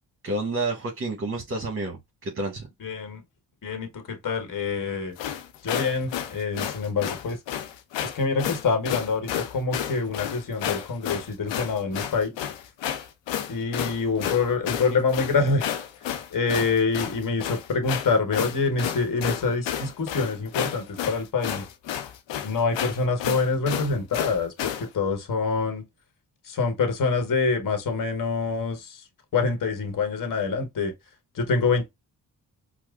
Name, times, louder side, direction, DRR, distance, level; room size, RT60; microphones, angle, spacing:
voice 1, 0.2-2.7, right 2 dB, 30° right, 1.0 m, -29 dB
voice 2, 2.8-3.2 3.6-5.1 5.6-7.4 8.0-12.4 13.5-15.7 16.3-21.7 22.4-25.8 26.4-29.0 29.3-30.9 31.3-31.9, left 4 dB, 45° left, 1.1 m, -26 dB
sound 1, 5.2-24.9, left 10 dB, 80° left, 0.7 m, -31 dB
4.6 x 2.1 x 2.3 m
supercardioid pair, 50°, 43 cm